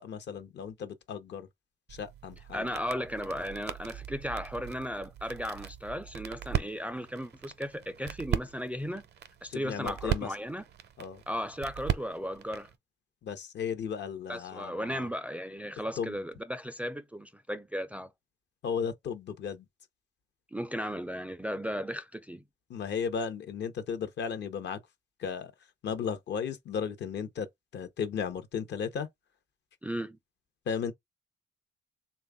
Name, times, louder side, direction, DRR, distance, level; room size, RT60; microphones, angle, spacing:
voice 1, 0.0-1.5 2.0-2.7 9.5-10.3 11.0-11.2 13.2-15.1 16.0-16.1 18.6-19.6 22.7-24.8 25.2-25.5 25.8-27.5 27.7-29.1 30.7-30.9, left 7 dB, 60° left, 0.7 m, -35 dB
sound 1, 1.9-12.8, right 10 dB, 55° right, 0.6 m, -38 dB
voice 2, 2.5-9.0 9.4-10.6 11.3-12.7 14.3-18.1 20.5-22.4 29.8-30.2, equal, 5° right, 0.3 m, -36 dB
3.3 x 2.3 x 3.5 m
cardioid pair, 90°, 20 cm